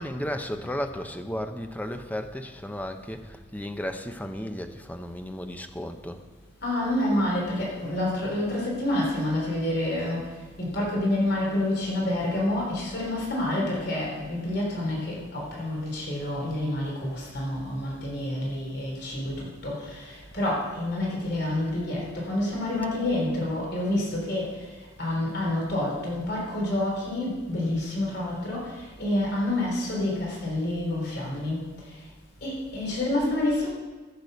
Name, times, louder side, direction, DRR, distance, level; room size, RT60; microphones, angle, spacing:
voice 1, 0.0-6.2, equal, 10° left, 6 dB, 0.8 m, -34 dB
voice 2, 6.6-24.7 25.0-32.0 32.4-33.7, left 1 dB, 60° left, -3 dB, 3.8 m, -28 dB
14.5 x 6.8 x 6.8 m, 1.4 s
head